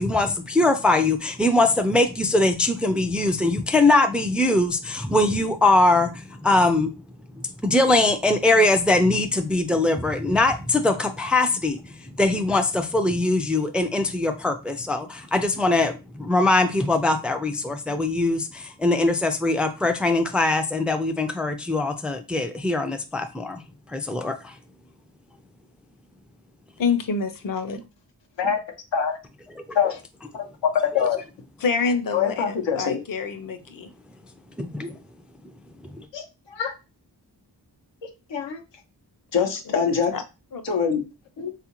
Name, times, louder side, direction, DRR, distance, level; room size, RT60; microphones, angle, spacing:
voice 1, 0.0-6.9 7.6-23.6 23.9-24.5 34.6-35.0, left 2 dB, 5° right, 0.3 m, -22 dB
voice 2, 26.8-27.8 31.6-33.9 39.4-39.8 40.1-40.2 40.5-40.6, left 5 dB, 50° left, 0.6 m, -27 dB
voice 3, 32.1-33.0 36.1-36.2 36.5-36.7 38.3-38.6 39.3-40.1 40.6-41.0 41.4-41.5, left 7 dB, 85° left, 0.8 m, -24 dB
3.6 x 2.4 x 2.9 m
cardioid pair, 55°, 42 cm